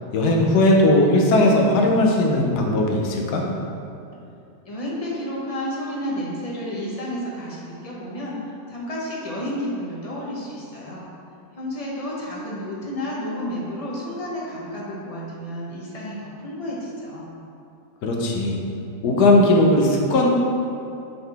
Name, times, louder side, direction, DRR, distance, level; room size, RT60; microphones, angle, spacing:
voice 1, 0.1-3.4 18.0-18.6 19.0-20.3, left 1 dB, 85° left, 0 dB, 1.3 m, -18 dB
voice 2, 4.6-11.0 11.6-17.3, equal, 25° left, -5 dB, 0.9 m, -31 dB
7.5 x 3.9 x 3.4 m, 2.7 s
omnidirectional pair, 1.7 m